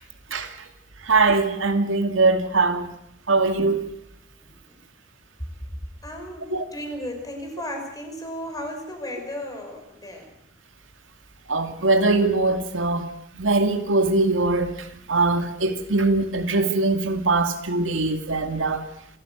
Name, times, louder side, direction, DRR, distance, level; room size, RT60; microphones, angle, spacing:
voice 1, 1.0-2.9 3.3-3.9 6.5-6.6 11.5-13.1 13.3-18.8, right 3 dB, 90° right, 2.3 m, -22 dB
voice 2, 4.4-4.8 6.0-10.3, equal, 20° left, 5.6 m, -35 dB
27.5 x 15.0 x 8.1 m
head